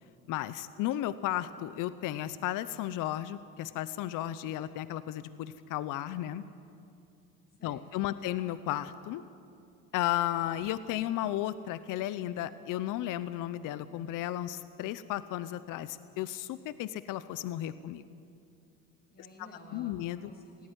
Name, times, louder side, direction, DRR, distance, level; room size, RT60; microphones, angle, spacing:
voice 1, 0.3-6.4 7.6-9.2 9.9-18.0 19.7-20.3, left 13 dB, 65° left, 14 dB, 0.8 m, -34 dB
voice 2, 7.6-8.2 19.1-20.0 20.2-20.7, left 1 dB, 30° left, 1 dB, 7.1 m, -53 dB
18.0 x 16.0 x 9.7 m, 2.5 s
supercardioid pair, 95°, 34 cm